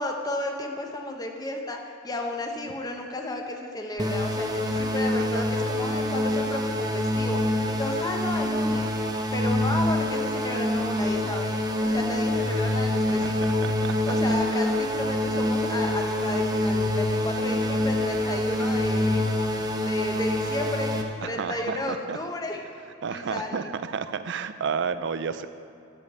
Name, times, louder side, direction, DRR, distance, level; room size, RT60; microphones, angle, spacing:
voice 1, 0.0-13.5 14.1-19.3 19.8-22.6 23.1-23.7, left 1 dB, 20° left, 2 dB, 0.8 m, -33 dB
sound 1, 4.0-21.0, left 1 dB, 20° right, 0.7 m, -26 dB
voice 2, 4.7-5.4 12.6-12.7 13.2-14.1 21.2-22.2 23.0-25.5, right 6 dB, 65° right, 12 dB, 0.4 m, -32 dB
11.0 x 5.2 x 6.6 m, 2.5 s
head